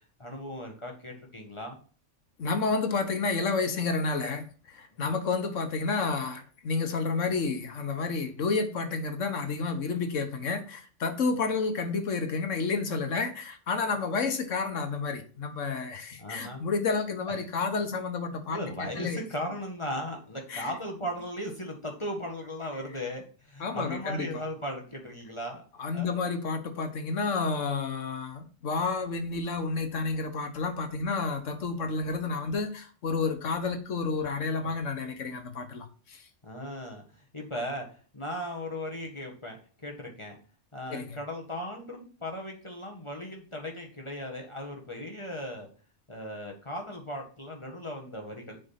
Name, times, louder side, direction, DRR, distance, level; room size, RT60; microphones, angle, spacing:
voice 1, 0.2-1.8 4.9-5.0 16.2-16.6 17.3-17.4 18.5-25.6 25.9-26.2 34.6-34.7 36.4-37.9 38.1-40.4 40.7-45.7 46.1-48.6, equal, 25° left, 1.8 m, -37 dB
voice 2, 2.4-19.2 20.5-20.7 23.6-24.4 25.8-36.2 40.9-41.2, left 4 dB, 85° left, 1.5 m, -30 dB
7.4 x 5.2 x 5.8 m
omnidirectional pair, 1.3 m